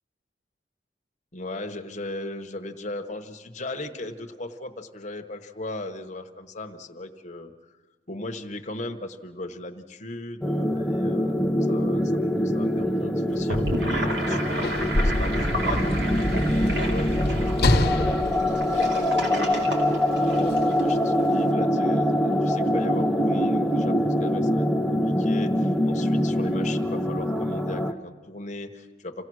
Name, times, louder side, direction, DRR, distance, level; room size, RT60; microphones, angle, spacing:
voice 1, 1.3-7.8 8.1-15.9 16.4-29.2, left 2 dB, 40° left, 5 dB, 1.2 m, -37 dB
sound 1, 10.4-27.9, equal, ahead, 0.7 m, -24 dB
Gurgling / Sink (filling or washing), 13.3-20.8, right 1 dB, 80° right, 2.9 m, -32 dB
Sliding door / Slam, 14.2-19.6 20.5-20.6, left 1 dB, 65° left, 1.1 m, -26 dB
27.5 x 16.5 x 6.3 m, 1.4 s
head